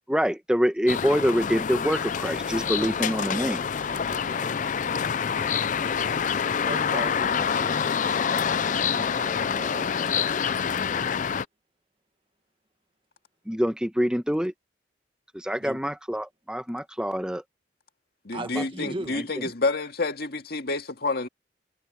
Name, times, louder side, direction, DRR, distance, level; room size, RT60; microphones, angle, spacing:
voice 1, 0.1-3.6 13.5-14.5 15.3-17.4 18.6-18.7 19.4-19.5, equal, 5° right, 1.3 m, -25 dB
sound 1, 0.9-11.4, left 7 dB, 45° left, 0.4 m, -26 dB
voice 2, 2.6-5.5 6.4-8.5 8.9-11.1 15.6-15.8 18.3-19.2, right 1 dB, 30° right, 1.8 m, -40 dB
voice 3, 18.3-21.3, left 3 dB, 60° left, 2.1 m, -28 dB
head